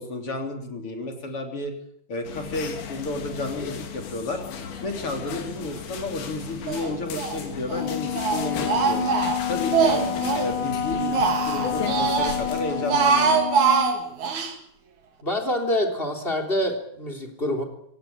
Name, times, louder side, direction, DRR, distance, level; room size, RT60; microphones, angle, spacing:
voice 1, 0.0-1.7 2.1-4.4 4.8-9.1 9.5-10.0 10.4-13.5, left 2 dB, 35° left, 4 dB, 3.8 m, -32 dB
sound 1, 2.2-13.4, left 7 dB, 70° left, 4.3 m, -36 dB
Speech, 6.7-7.4 7.7-10.5 10.9-12.4 12.7-14.5, right 6 dB, 50° right, 3.5 m, -23 dB
Wind instrument woodwind instrument, 7.7-14.0, left 9 dB, 55° left, 1.7 m, -29 dB
voice 2, 15.2-17.6, left 1 dB, 15° left, 4 dB, 3.2 m, -26 dB
26.0 x 17.0 x 8.7 m, 0.68 s
omnidirectional pair, 4.5 m